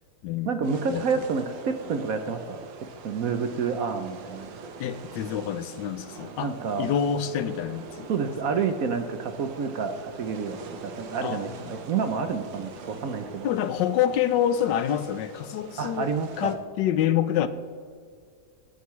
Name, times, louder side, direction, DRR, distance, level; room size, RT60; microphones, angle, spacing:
voice 1, 0.5-2.6 3.0-4.5 6.4-6.9 8.1-13.5 15.8-16.5, right 5 dB, 60° right, 8 dB, 1.0 m, -29 dB
sound 1, 0.6-16.6, right 5 dB, 85° right, 1.7 m, -43 dB
voice 2, 4.8-6.5 6.8-8.1 11.2-11.5 13.4-16.1 16.4-17.5, left 10 dB, 80° left, 13 dB, 1.3 m, -26 dB
19.5 x 8.2 x 3.2 m, 2.1 s
omnidirectional pair, 2.0 m